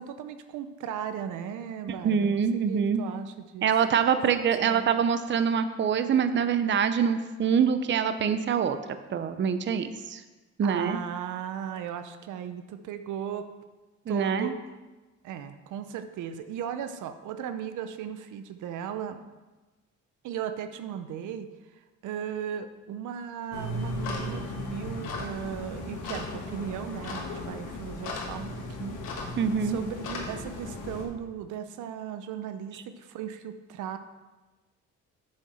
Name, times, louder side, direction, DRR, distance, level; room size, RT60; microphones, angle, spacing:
voice 1, 0.0-3.7 4.1-4.8 10.6-13.5 14.1-14.6 15.2-19.2 20.2-29.4 29.6-34.0, right 8 dB, 80° right, 9 dB, 0.6 m, -37 dB
voice 2, 2.0-3.0 3.6-8.8 9.1-10.2 10.6-11.0 14.1-14.5 29.4-29.8, right 7 dB, 40° right, 10 dB, 0.6 m, -25 dB
sound 1, 23.5-31.1, left 2 dB, 90° left, 1.4 m, -36 dB
7.3 x 6.5 x 4.2 m, 1.2 s
cardioid pair, 90°, 30 cm